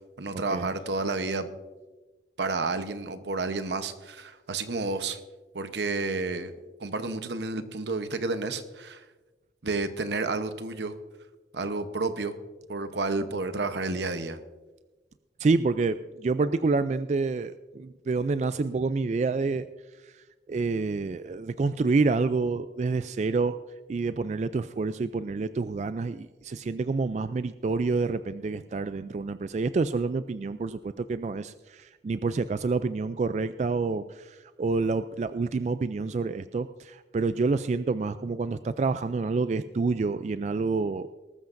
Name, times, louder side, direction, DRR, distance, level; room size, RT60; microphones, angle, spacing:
voice 1, 0.2-1.5 2.4-5.2 5.5-6.5 6.8-9.0 9.6-11.0 11.5-12.3 12.7-14.4, right 3 dB, 80° right, 10 dB, 0.9 m, -30 dB
voice 2, 15.4-19.6 20.5-23.6 23.9-41.1, right 4 dB, 40° right, 12 dB, 0.3 m, -28 dB
20.0 x 13.0 x 2.6 m, 1.2 s
head